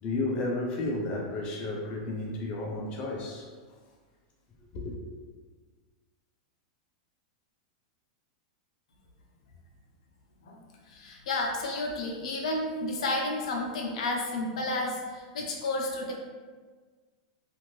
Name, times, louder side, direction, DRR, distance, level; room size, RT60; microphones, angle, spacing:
voice 1, 0.0-3.5 4.7-4.9, left 2 dB, 30° left, -1 dB, 0.4 m, -32 dB
voice 2, 10.9-16.1, left 2 dB, 80° left, 0 dB, 0.6 m, -31 dB
2.6 x 2.5 x 3.0 m, 1.5 s
supercardioid pair, 155°, 3 cm